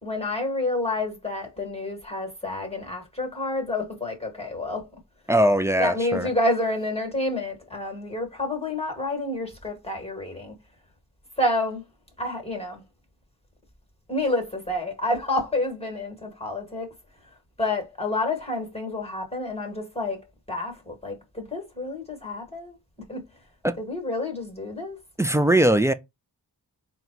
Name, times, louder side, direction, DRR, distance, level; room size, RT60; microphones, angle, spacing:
voice 1, 0.0-4.9 5.8-10.5 11.4-11.8 12.2-12.8 14.1-16.9 17.6-20.2 20.5-22.7 23.1-23.2 23.8-25.0, left 2 dB, 15° left, 1.4 m, -29 dB
voice 2, 5.3-6.3 23.6-23.8 25.2-25.9, right 1 dB, 10° right, 0.3 m, -20 dB
3.9 x 2.2 x 4.5 m
cardioid pair, 55°, 40 cm